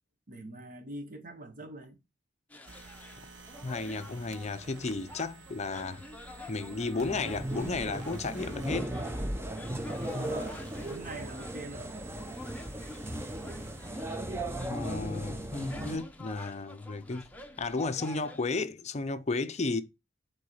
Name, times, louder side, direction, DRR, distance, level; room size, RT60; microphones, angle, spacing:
voice 1, 0.3-2.0 10.0-12.0, right 2 dB, 45° right, 1.4 m, -44 dB
sound 1, 2.5-18.4, left 1 dB, 10° left, 0.9 m, -50 dB
sound 2, 2.7-13.9, right 3 dB, 70° right, 0.9 m, -51 dB
voice 2, 3.6-6.0 6.5-9.0 14.7-17.3 17.6-19.8, left 3 dB, 35° left, 0.6 m, -33 dB
sound 3, 7.0-16.0, right 1 dB, 15° right, 0.6 m, -37 dB
8.0 x 3.9 x 5.6 m
head